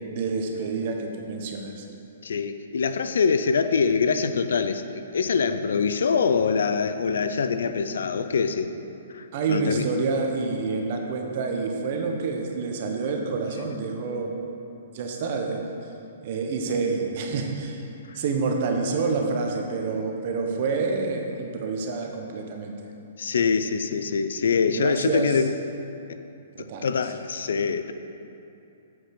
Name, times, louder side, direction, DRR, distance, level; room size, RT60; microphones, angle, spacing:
voice 1, 0.1-1.9 9.3-14.4 14.9-15.6 16.2-17.8 18.1-22.7 24.7-25.4 26.6-26.9, right 4 dB, 50° right, 2 dB, 1.1 m, -28 dB
voice 2, 2.2-8.7 9.1-9.9 18.1-18.2 23.2-25.5 26.8-27.9, left 5 dB, 80° left, 10 dB, 0.5 m, -24 dB
7.9 x 5.1 x 6.1 m, 2.7 s
hypercardioid pair, 145°, 0 cm